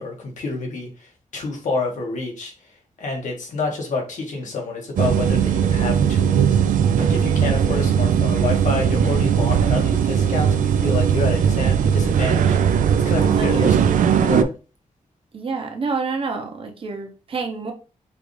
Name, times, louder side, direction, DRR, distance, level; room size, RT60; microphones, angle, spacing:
voice 1, 0.0-2.7 3.0-6.6 7.0-13.7 14.1-14.5, left 3 dB, 70° left, 1 dB, 1.4 m, -28 dB
sound 1, 5.0-14.4, right 8 dB, 80° right, 0.4 m, -18 dB
voice 2, 7.5-7.9 13.4-13.7 15.3-17.7, right 4 dB, 45° right, 3 dB, 0.8 m, -28 dB
4.8 x 2.5 x 3.2 m, 0.33 s
wide cardioid pair, 155°, 13 cm